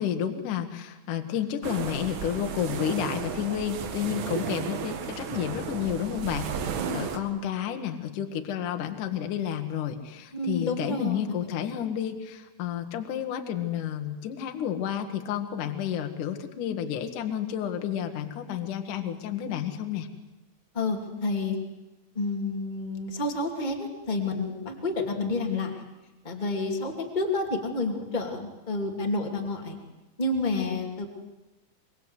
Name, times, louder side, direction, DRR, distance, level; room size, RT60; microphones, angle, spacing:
voice 1, 0.0-6.7 6.9-20.1, left 9 dB, 55° left, 5 dB, 2.4 m, -31 dB
Puget Sound Waves, 1.6-7.2, right 7 dB, 80° right, 4.4 m, -34 dB
voice 2, 6.7-7.1 10.3-11.2 20.7-21.5 22.1-25.8 26.2-29.8 30.2-31.1, left 2 dB, 15° left, 2 dB, 1.6 m, -29 dB
24.5 x 23.5 x 8.2 m, 1.0 s
omnidirectional pair, 5.5 m